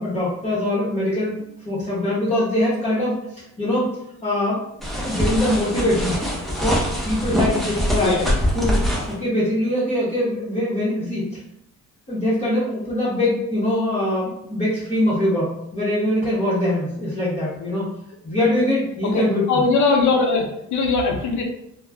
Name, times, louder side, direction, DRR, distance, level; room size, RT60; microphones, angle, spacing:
voice 1, 0.0-3.9 4.2-4.6 4.9-6.2 6.6-8.2 8.5-8.8 9.1-11.3 12.1-17.9 18.2-19.6, left 1 dB, 20° left, -11 dB, 0.9 m, -23 dB
sound 1, 4.8-9.1, equal, ahead, 0.6 m, -23 dB
voice 2, 8.0-8.3 19.0-19.2 19.5-21.4, left 3 dB, 60° left, 2 dB, 0.6 m, -20 dB
2.3 x 2.1 x 3.3 m, 0.79 s
cardioid pair, 125°, 33 cm